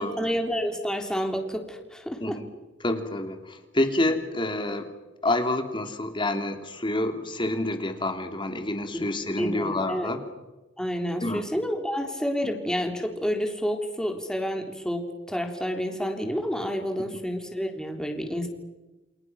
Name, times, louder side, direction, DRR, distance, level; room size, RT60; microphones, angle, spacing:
voice 1, 0.0-2.4 8.9-9.1 9.4-10.2 10.8-18.5, equal, 5° left, 3 dB, 3.6 m, -29 dB
voice 2, 2.8-4.9 5.2-10.2 11.2-11.4, left 1 dB, 25° left, 6 dB, 3.1 m, -28 dB
29.0 x 27.5 x 6.2 m, 1.1 s
head